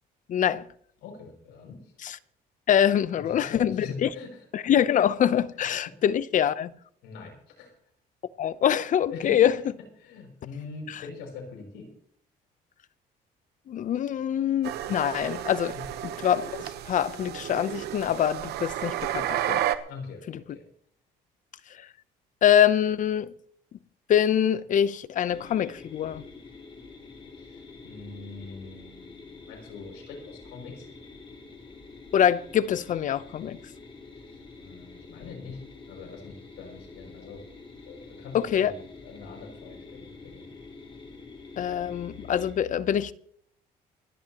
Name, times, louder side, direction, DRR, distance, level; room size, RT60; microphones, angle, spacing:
voice 1, 0.3-0.6 2.0-2.2 2.7-4.1 4.5-6.7 8.4-9.5 10.9-11.0 13.7-15.7 16.0-19.6 22.4-23.3 24.1-26.2 32.1-33.6 38.3-38.7 41.6-43.1, left 9 dB, 50° left, 0.7 m, -24 dB
voice 2, 1.0-1.9 3.1-4.4 7.0-7.7 9.1-9.5 10.0-11.9 15.7-16.0 19.9-20.6 27.4-30.9 34.1-35.6 35.9-37.4 37.8-38.8 39.0-40.5, left 4 dB, 85° left, 6.4 m, -42 dB
sound 1, 14.6-19.8, right 12 dB, 75° right, 1.1 m, -32 dB
sound 2, 25.3-42.5, left 3 dB, 30° left, 4.1 m, -47 dB
27.5 x 10.5 x 3.0 m
cardioid pair, 110°, 17 cm